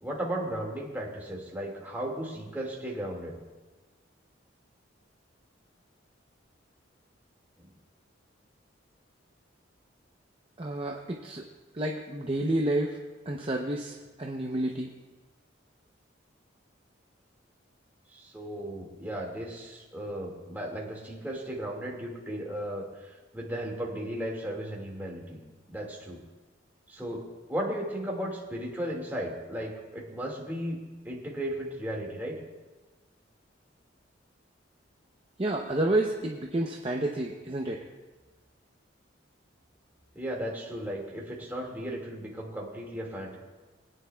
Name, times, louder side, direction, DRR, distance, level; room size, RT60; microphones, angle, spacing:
voice 1, 0.0-3.4 18.1-25.4 25.7-26.2 26.9-30.8 31.0-32.4 40.1-43.4, right 1 dB, 10° right, -3 dB, 1.9 m, -35 dB
voice 2, 10.6-11.4 11.7-13.0 13.3-14.9 35.4-37.8, right 1 dB, 30° right, 1 dB, 0.6 m, -30 dB
23.5 x 9.5 x 2.3 m, 1.2 s
head